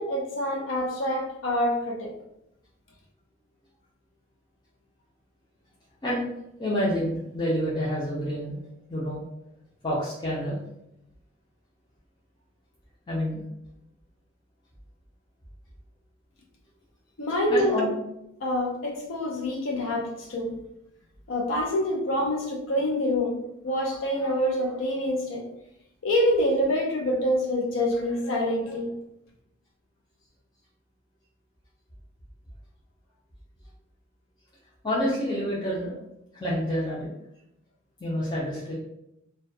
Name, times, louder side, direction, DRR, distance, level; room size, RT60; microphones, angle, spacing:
voice 1, 0.0-2.1 17.2-17.8 18.4-20.6 21.3-25.4 26.0-28.9, left 1 dB, 90° left, 0 dB, 0.5 m, -26 dB
voice 2, 6.6-8.6 8.9-9.2 9.8-10.6 13.1-13.4 17.5-17.9 34.8-35.9 36.3-37.1 38.0-38.7, equal, 20° left, -8 dB, 0.4 m, -28 dB
2.2 x 2.2 x 2.6 m, 0.83 s
head